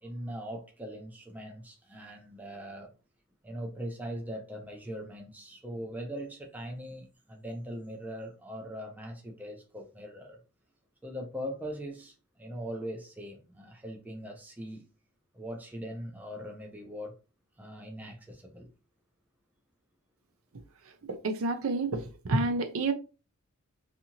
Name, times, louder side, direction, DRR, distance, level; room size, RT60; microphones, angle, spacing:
voice 1, 0.0-2.9 3.4-10.4 11.0-14.8 15.3-17.1 17.6-18.7, equal, 5° right, 0.4 m, -41 dB
voice 2, 21.2-22.9, right 2 dB, 70° right, 0.5 m, -29 dB
2.7 x 2.5 x 2.8 m
head